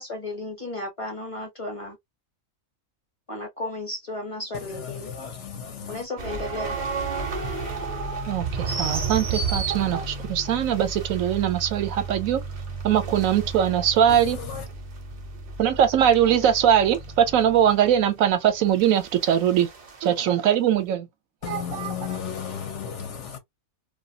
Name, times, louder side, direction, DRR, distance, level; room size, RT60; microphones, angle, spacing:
voice 1, 0.0-2.0 3.3-5.1 5.9-6.7, left 2 dB, 30° left, 0.7 m, -34 dB
voice 2, 4.8-6.0 21.4-23.4, left 8 dB, 60° left, 0.9 m, -34 dB
sound 1, 6.2-20.0, right 4 dB, 45° right, 0.6 m, -32 dB
voice 3, 8.3-12.4 12.8-14.4 15.6-19.7 20.0-21.1 21.5-22.2, right 9 dB, 75° right, 1.0 m, -21 dB
2.5 x 2.3 x 2.7 m
omnidirectional pair, 1.5 m